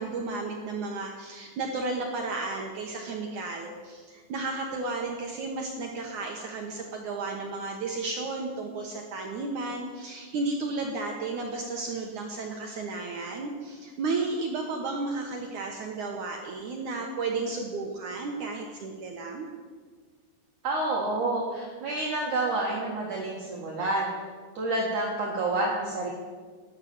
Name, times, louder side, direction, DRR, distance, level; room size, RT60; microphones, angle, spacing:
voice 1, 0.0-19.5, right 3 dB, 75° right, 2 dB, 1.7 m, -33 dB
voice 2, 20.6-24.1 24.5-26.1, right 2 dB, 55° right, -3 dB, 2.6 m, -28 dB
12.5 x 10.5 x 7.9 m, 1.5 s
omnidirectional pair, 5.3 m